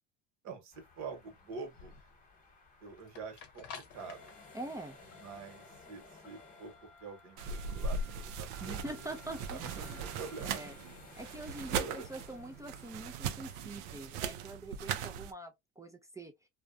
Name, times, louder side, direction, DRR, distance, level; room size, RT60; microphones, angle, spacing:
voice 1, 0.4-1.9 2.8-4.3 5.1-9.2 9.5-10.7 11.2-11.4 11.7-12.0, right 5 dB, 50° right, 1.1 m, -46 dB
sound 1, 0.7-14.8, left 6 dB, 55° left, 0.7 m, -56 dB
hot air ballons, 0.7-14.3, left 3 dB, 25° left, 1.0 m, -58 dB
voice 2, 4.5-5.0 8.6-10.0 10.4-10.7 11.2-16.3, right 2 dB, 10° right, 0.3 m, -44 dB
sound 2, 7.4-15.3, right 5 dB, 80° right, 0.5 m, -39 dB
2.4 x 2.2 x 2.4 m
supercardioid pair, 85°, 35 cm